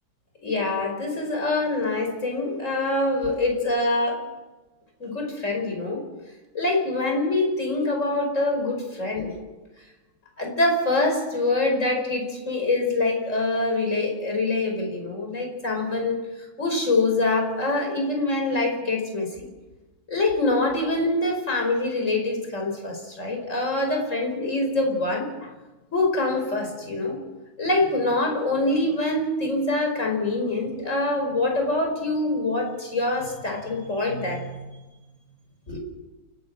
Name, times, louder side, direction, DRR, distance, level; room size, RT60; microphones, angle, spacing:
voice 1, 0.4-4.2 5.0-6.0 6.5-9.3 10.4-16.2 16.6-19.3 20.1-25.5 25.9-27.2 27.6-34.6 35.7-35.8, left 2 dB, 35° left, 2 dB, 5.5 m, -25 dB
29.0 x 12.0 x 7.6 m, 1.1 s
omnidirectional pair, 2.3 m